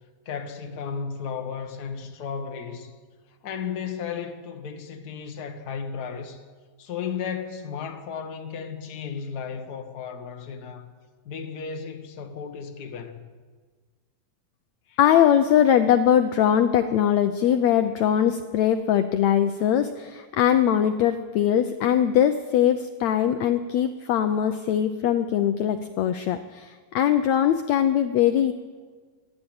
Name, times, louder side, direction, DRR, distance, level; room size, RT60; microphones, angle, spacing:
voice 1, 0.2-2.9 3.4-6.4 6.8-10.9 11.2-13.2 14.9-15.0, left 6 dB, 45° left, 1.3 m, -34 dB
voice 2, 15.0-28.5, left 10 dB, 80° left, 1.5 m, -21 dB
26.5 x 11.0 x 8.9 m
omnidirectional pair, 4.1 m